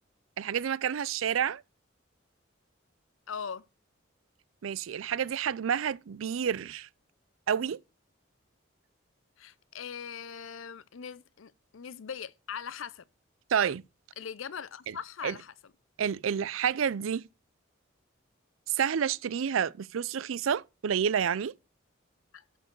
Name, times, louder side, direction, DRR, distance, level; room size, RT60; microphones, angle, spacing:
voice 1, 0.4-1.6 4.6-6.9 7.5-7.8 13.5-13.8 14.9-15.0 15.2-15.3 16.0-17.3 18.7-21.5, right 8 dB, 90° right, 0.4 m, -29 dB
voice 2, 3.3-3.6 9.4-13.0 14.2-15.5 22.3-22.4, left 7 dB, 85° left, 0.6 m, -40 dB
12.0 x 4.6 x 4.5 m
head